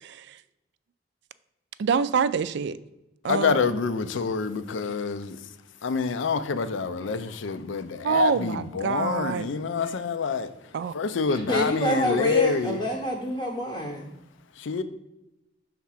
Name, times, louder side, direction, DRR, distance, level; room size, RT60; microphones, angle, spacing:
voice 1, 0.0-0.4 1.8-2.8 3.2-3.7 8.0-9.5 10.7-10.9, right 6 dB, 65° right, 0.3 m, -26 dB
voice 2, 3.3-5.4 5.8-10.5 10.9-12.8 14.6-14.8, left 5 dB, 70° left, 0.5 m, -26 dB
voice 3, 11.3-14.1, equal, 20° left, 0.7 m, -28 dB
5.6 x 3.6 x 5.7 m
head